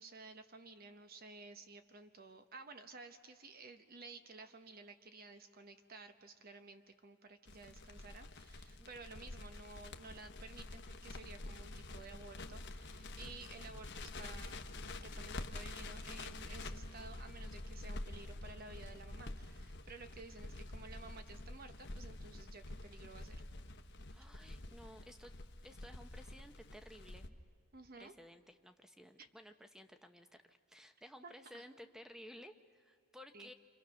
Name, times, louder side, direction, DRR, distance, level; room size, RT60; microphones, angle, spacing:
voice 1, 0.0-14.6 14.9-23.4 27.7-28.1 29.2-29.3 31.2-31.6 33.3-33.5, right 3 dB, 40° right, 8 dB, 0.9 m, -54 dB
Crackle, 7.5-27.3, left 2 dB, 50° left, 1.1 m, -48 dB
voice 2, 8.8-9.3 24.1-25.3 25.6-27.4 28.0-33.5, equal, ahead, 8 dB, 0.9 m, -56 dB
30.0 x 26.0 x 6.3 m, 2.3 s
head